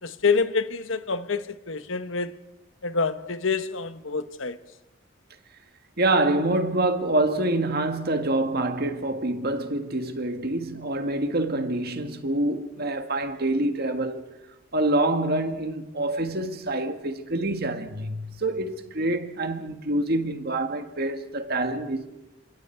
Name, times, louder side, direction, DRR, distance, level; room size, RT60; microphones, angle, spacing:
voice 1, 0.0-2.4 2.8-4.6, left 4 dB, 75° left, 1.2 m, -27 dB
voice 2, 6.0-14.2 14.7-22.1, right 2 dB, 50° right, 1.9 m, -26 dB
29.0 x 27.0 x 4.6 m
head